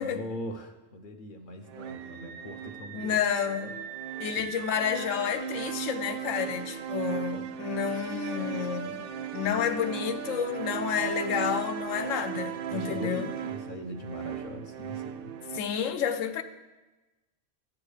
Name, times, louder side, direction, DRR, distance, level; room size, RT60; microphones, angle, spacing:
voice 1, 0.0-3.2 4.3-4.4 9.4-9.6 12.7-15.3, left 1 dB, 50° left, 0.8 m, -40 dB
sound 1, 1.7-15.6, right 8 dB, 60° right, 0.6 m, -37 dB
Screaming, 1.8-5.2, right 9 dB, 90° right, 1.0 m, -43 dB
voice 2, 2.9-3.8 4.2-9.0 9.3-13.3 15.5-16.4, left 8 dB, 90° left, 1.0 m, -30 dB
13.0 x 8.5 x 3.2 m
omnidirectional pair, 1.3 m